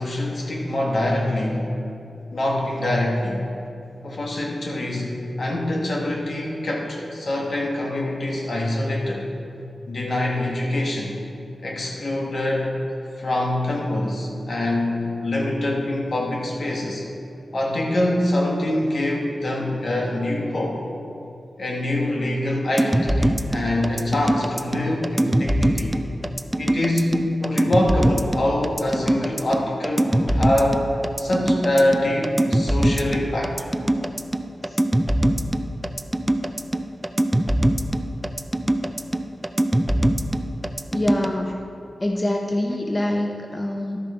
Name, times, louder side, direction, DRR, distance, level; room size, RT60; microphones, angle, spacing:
voice 1, 0.0-1.7 2.3-3.4 4.0-9.3 9.9-11.1 11.6-12.7 13.2-17.0 17.5-20.8 21.6-25.9 26.6-30.9 31.2-33.6, left 1 dB, 65° left, -2 dB, 1.6 m, -24 dB
sound 1, 22.8-41.3, right 1 dB, 15° right, 0.4 m, -22 dB
voice 2, 40.9-41.7 42.0-44.0, left 1 dB, 25° left, 2 dB, 0.6 m, -25 dB
12.0 x 6.2 x 4.4 m, 2.6 s
cardioid pair, 70°, 0 cm